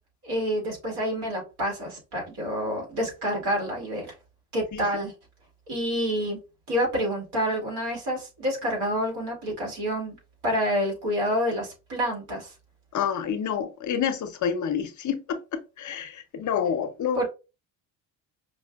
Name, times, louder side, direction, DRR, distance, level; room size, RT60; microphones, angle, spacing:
voice 1, 0.2-4.1 4.5-5.1 5.7-6.4 6.7-10.2 10.4-12.5 17.1-17.3, equal, 75° right, 2.1 m, -28 dB
voice 2, 12.9-17.2, left 7 dB, 45° left, 0.7 m, -28 dB
5.1 x 2.3 x 2.3 m
cardioid pair, 90°, 40 cm